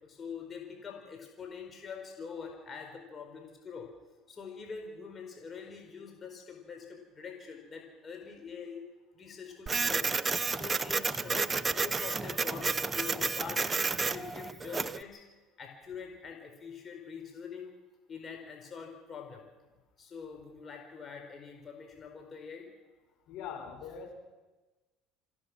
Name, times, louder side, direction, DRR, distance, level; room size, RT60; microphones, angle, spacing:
voice 1, 0.0-3.9 4.3-8.8 9.1-10.1 10.5-15.2 15.6-17.7 18.1-19.4 20.0-22.7, left 6 dB, 35° left, 2 dB, 4.4 m, -44 dB
Printer, 9.7-15.0, right 4 dB, 25° right, 0.8 m, -31 dB
voice 2, 23.3-24.1, left 7 dB, 65° left, 2 dB, 5.8 m, -42 dB
26.5 x 16.0 x 6.2 m, 1.2 s
hypercardioid pair, 80°, 0 cm